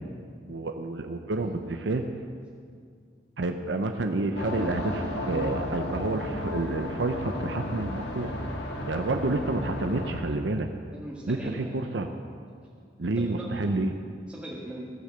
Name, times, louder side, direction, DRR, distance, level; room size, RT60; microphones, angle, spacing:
voice 1, 0.5-2.1 3.4-8.3 8.9-10.7 11.3-12.1 13.0-13.9, right 2 dB, 90° right, 5 dB, 0.7 m, -29 dB
sound 1, 4.3-10.2, left 1 dB, 75° left, 1.7 m, -34 dB
voice 2, 10.9-11.7 13.0-13.7 14.2-14.9, equal, 5° right, -7 dB, 1.7 m, -41 dB
16.5 x 6.7 x 7.6 m, 2.2 s
head